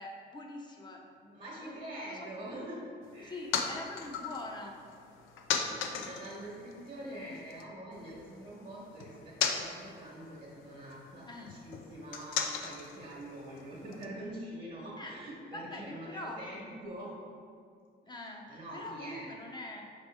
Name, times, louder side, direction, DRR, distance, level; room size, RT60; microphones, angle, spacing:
voice 1, 0.0-2.3 3.2-4.8 11.3-11.5 15.0-16.4 18.0-19.8, left 2 dB, 20° left, 0 dB, 0.6 m, -44 dB
voice 2, 1.3-2.8 3.1-3.4 5.7-17.1 18.5-19.3, right 1 dB, 40° right, -5 dB, 1.1 m, -45 dB
sound 1, 3.0-7.6 7.9-14.1, left 6 dB, 90° left, 0.4 m, -38 dB
5.0 x 3.0 x 3.4 m, 2.2 s
cardioid pair, 90°, 20 cm